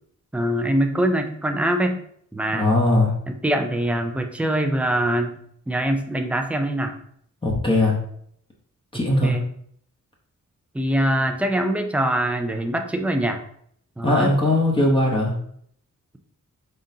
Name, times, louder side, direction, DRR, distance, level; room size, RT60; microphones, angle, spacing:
voice 1, 0.3-2.0 2.3-2.7 3.3-5.4 5.7-6.9 9.2-9.4 10.7-13.4 14.0-14.3, right 1 dB, 5° right, 4 dB, 0.3 m, -23 dB
voice 2, 2.5-3.1 7.4-8.0 8.9-9.4 14.0-15.3, left 1 dB, 15° left, -2 dB, 0.8 m, -19 dB
5.0 x 3.7 x 2.7 m, 0.67 s
wide cardioid pair, 160°, 31 cm